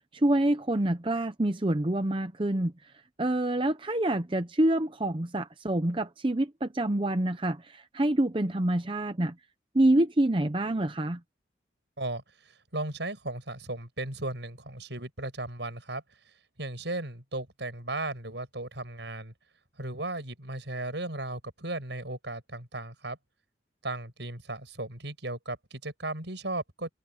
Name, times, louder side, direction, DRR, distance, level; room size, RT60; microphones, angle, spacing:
voice 1, 0.0-2.7 3.2-9.3 9.7-11.2, right 1 dB, 30° right, 0.7 m, -26 dB
voice 2, 12.0-16.0 16.6-19.3 19.8-23.2 23.8-26.9, right 2 dB, 75° right, 6.3 m, -36 dB
head